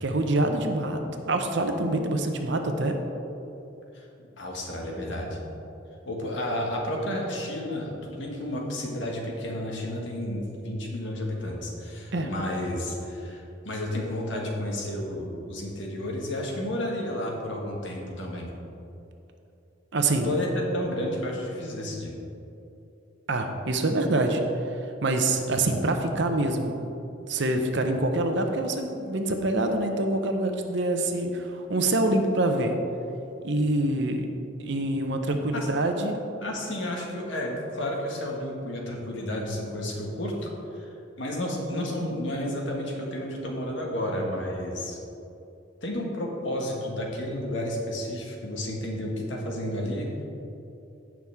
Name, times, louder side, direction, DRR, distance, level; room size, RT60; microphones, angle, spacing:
voice 1, 0.0-3.0 12.1-12.3 19.9-20.3 23.3-24.4 24.7-26.9 27.3-32.8 33.4-34.3 34.6-36.2, right 2 dB, 65° right, 4 dB, 0.8 m, -26 dB
voice 2, 4.4-5.4 6.1-18.5 20.2-22.1 35.5-35.7 36.4-45.0 45.8-50.1, left 1 dB, 70° left, -1 dB, 1.8 m, -31 dB
16.5 x 6.1 x 3.6 m, 2.8 s
head